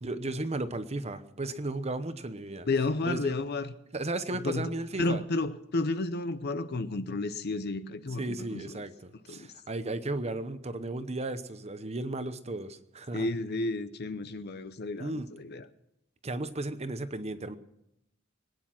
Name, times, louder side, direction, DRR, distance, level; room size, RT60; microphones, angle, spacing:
voice 1, 0.0-2.7 3.1-3.3 3.9-5.2 8.2-13.3 15.0-15.3 16.2-17.6, right 2 dB, 30° right, 0.9 m, -35 dB
voice 2, 2.7-3.7 4.4-4.7 5.0-8.6 9.3-9.5 13.1-15.6, left 2 dB, 50° left, 0.7 m, -32 dB
22.5 x 9.7 x 5.9 m
head